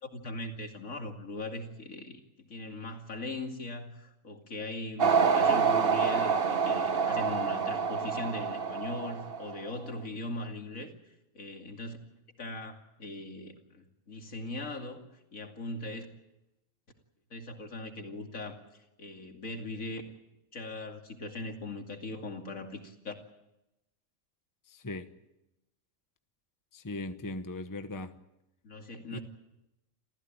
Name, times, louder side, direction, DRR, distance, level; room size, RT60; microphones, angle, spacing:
voice 1, 0.0-10.9 11.3-12.0 12.4-15.0 15.3-16.1 17.3-18.6 19.0-20.1 20.5-23.1 28.6-29.2, left 2 dB, 75° left, 3.0 m, -40 dB
sound 1, 5.0-9.7, right 5 dB, 45° right, 1.1 m, -27 dB
voice 2, 24.7-25.1 26.7-28.1 29.1-29.2, left 2 dB, 15° left, 1.0 m, -38 dB
28.0 x 15.0 x 9.0 m
omnidirectional pair, 1.4 m